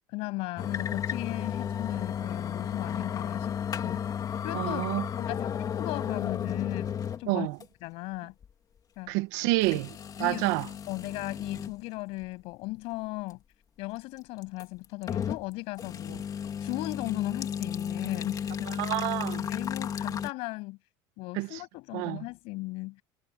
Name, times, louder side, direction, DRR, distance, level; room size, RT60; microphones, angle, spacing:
voice 1, 0.1-3.6 3.8-4.1 4.4-4.8 5.2-7.5 7.8-8.3 9.0-9.1 9.7-9.8 10.2-10.5 10.9-13.4 13.8-16.2 16.6-18.7 19.4-20.8 21.2-23.0, left 23 dB, 70° left, 7.9 m, -37 dB
sound 1, 0.6-7.3 7.6-7.7 8.4-8.5 9.6-11.8 12.2-12.3 14.4-15.5 15.8-20.3, left 8 dB, 35° left, 3.1 m, -33 dB
voice 2, 4.5-5.1 7.3-7.6 9.1-9.9 10.2-10.7 18.7-19.5 21.4-21.6 21.9-22.2, right 21 dB, 80° right, 1.9 m, -28 dB
supercardioid pair, 115°, 10 cm